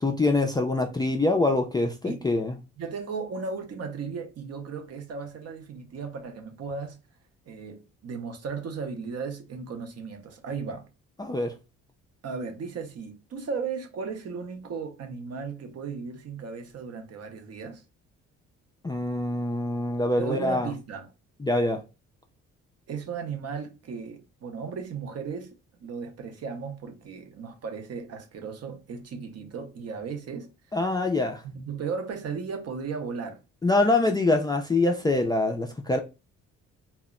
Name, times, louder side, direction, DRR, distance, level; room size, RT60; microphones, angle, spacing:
voice 1, 0.0-2.5 11.2-11.5 18.8-20.7 21.4-21.8 30.7-31.4 33.6-36.0, left 2 dB, 15° left, 0.3 m, -24 dB
voice 2, 2.8-7.0 7.5-10.9 12.2-17.8 20.2-21.1 22.9-30.8 31.4-33.4, right 5 dB, 55° right, 0.6 m, -36 dB
2.1 x 2.0 x 3.5 m
cardioid pair, 90°, 30 cm